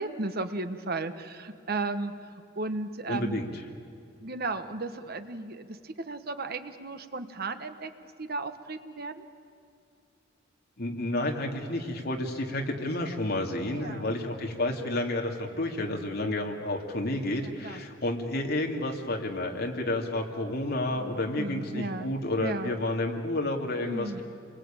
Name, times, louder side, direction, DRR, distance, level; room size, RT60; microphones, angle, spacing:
voice 1, 0.0-2.1 2.5-3.4 4.2-7.9 8.2-9.2 13.7-14.1 17.4-17.8 20.8-22.8 23.8-24.2, right 3 dB, 55° right, 9 dB, 1.3 m, -35 dB
voice 2, 3.1-3.5 10.8-24.2, left 1 dB, 55° left, 2 dB, 2.7 m, -30 dB
28.0 x 21.5 x 8.9 m, 2.4 s
head